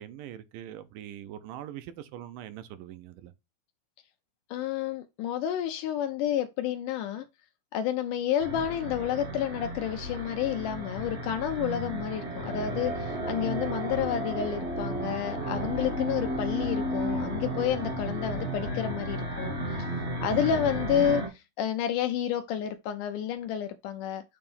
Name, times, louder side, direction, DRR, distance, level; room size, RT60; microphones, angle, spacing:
voice 1, 0.0-3.3 20.3-20.5, right 11 dB, 80° right, 2.1 m, -42 dB
voice 2, 4.5-7.3 7.7-19.9 20.2-24.2, left 10 dB, 85° left, 1.9 m, -30 dB
sound 1, 8.4-21.3, right 1 dB, 45° right, 0.8 m, -33 dB
6.9 x 2.9 x 5.4 m
omnidirectional pair, 4.2 m